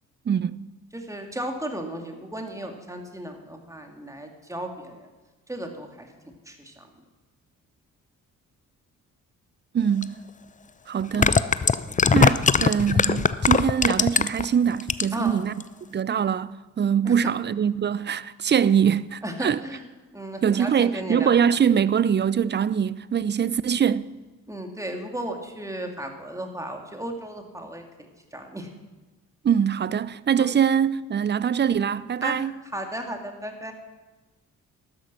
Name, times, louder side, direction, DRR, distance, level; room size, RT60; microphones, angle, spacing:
voice 1, 0.3-0.7 9.7-10.1 10.9-11.4 12.1-15.5 15.9-19.6 20.4-24.1 29.4-32.5, right 8 dB, 25° right, 0.5 m, -23 dB
voice 2, 0.9-5.1 5.5-6.1 6.5-6.9 11.8-12.0 15.1-15.4 17.0-17.3 19.2-19.8 20.1-21.3 24.5-28.7 30.4-30.5 32.2-32.4 32.7-33.7, right 1 dB, 5° right, 2.6 m, -35 dB
sound 1, 10.0-10.1 11.0-14.4 14.8-15.3 15.6-15.7, left 5 dB, 20° left, 0.6 m, -20 dB
12.5 x 9.8 x 6.2 m
hypercardioid pair, 40°, 41 cm